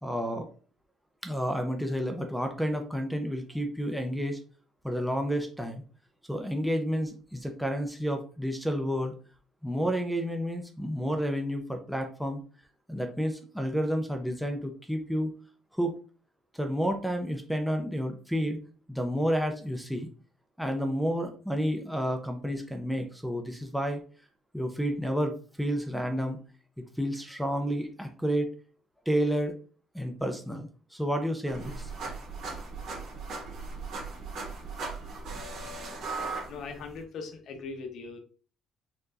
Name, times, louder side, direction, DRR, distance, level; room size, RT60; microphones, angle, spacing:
voice 1, 0.0-0.5 1.2-4.4 4.8-5.8 6.3-9.1 9.6-12.4 12.9-15.3 15.7-16.0 16.5-18.6 18.9-20.1 20.6-24.0 24.5-26.4 27.0-28.5 29.1-29.5 29.9-31.9, equal, ahead, 3 dB, 0.6 m, -30 dB
sound 1, 31.5-37.0, right 3 dB, 70° right, 1.4 m, -38 dB
voice 2, 36.5-38.2, left 4 dB, 60° left, 4 dB, 0.9 m, -40 dB
4.5 x 3.0 x 2.5 m, 0.39 s
cardioid pair, 125°, 0 cm